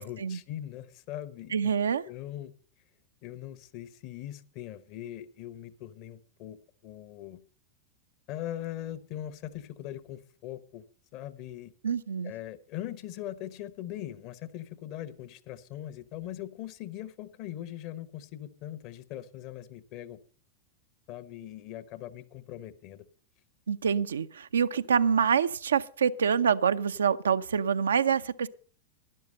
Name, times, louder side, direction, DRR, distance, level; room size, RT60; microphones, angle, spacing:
voice 1, 0.0-1.7 2.1-2.5 3.2-7.4 8.3-10.8 11.1-11.7 12.2-20.2 21.1-23.1, left 12 dB, 45° left, 1.0 m, -41 dB
voice 2, 1.5-2.0 11.8-12.3 23.7-28.5, right 7 dB, 70° right, 0.6 m, -26 dB
12.0 x 11.0 x 5.4 m
figure-of-eight pair, 90°, 0 cm